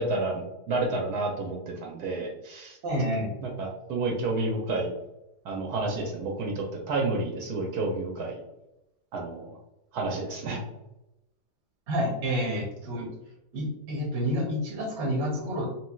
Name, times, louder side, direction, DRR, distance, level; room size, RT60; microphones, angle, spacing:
voice 1, 0.0-2.8 3.4-4.9 5.4-8.4 9.1-9.6 9.9-10.6, right 2 dB, 75° right, 1 dB, 1.1 m, -30 dB
voice 2, 2.8-3.3 11.9-13.1 13.5-15.7, equal, 50° right, 0 dB, 0.9 m, -29 dB
3.1 x 2.8 x 2.3 m, 0.90 s
omnidirectional pair, 1.8 m